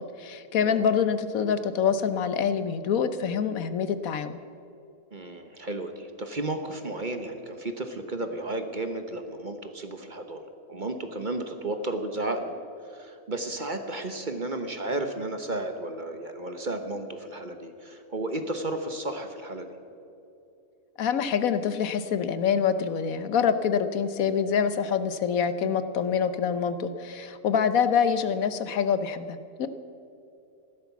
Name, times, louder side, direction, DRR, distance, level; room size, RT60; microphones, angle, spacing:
voice 1, 0.0-4.4 21.0-29.7, left 7 dB, 70° left, 11 dB, 1.2 m, -26 dB
voice 2, 5.1-12.6 12.8-19.7, right 2 dB, 35° right, 7 dB, 1.1 m, -33 dB
15.0 x 12.5 x 7.2 m, 2.7 s
omnidirectional pair, 1.5 m